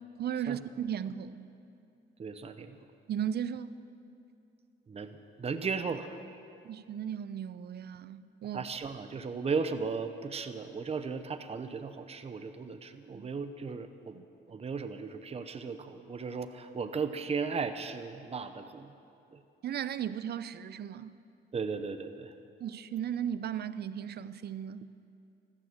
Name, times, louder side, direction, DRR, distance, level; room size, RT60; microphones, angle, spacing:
voice 1, 0.2-1.5 3.1-3.8 6.6-8.6 13.1-13.3 14.1-14.2 19.6-21.2 22.6-24.9, right 9 dB, 55° right, 0.6 m, -36 dB
voice 2, 2.2-2.8 4.9-5.1 5.4-6.1 8.5-14.1 14.5-18.9 19.3-19.4 21.5-22.3, right 5 dB, 30° right, 0.8 m, -36 dB
15.0 x 12.5 x 7.5 m
cardioid pair, 90°, 20 cm